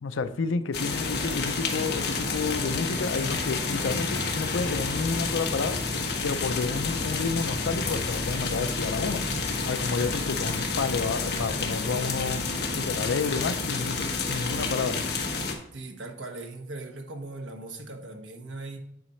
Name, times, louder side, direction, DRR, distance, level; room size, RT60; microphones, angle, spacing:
voice 1, 0.0-5.8 6.2-9.2 9.7-12.4 12.7-15.0, left 4 dB, 85° left, 0.5 m, -30 dB
sound 1, 0.7-15.5, left 3 dB, 55° left, 1.1 m, -29 dB
voice 2, 15.7-18.8, right 2 dB, 80° right, 1.2 m, -39 dB
9.3 x 4.1 x 4.3 m
head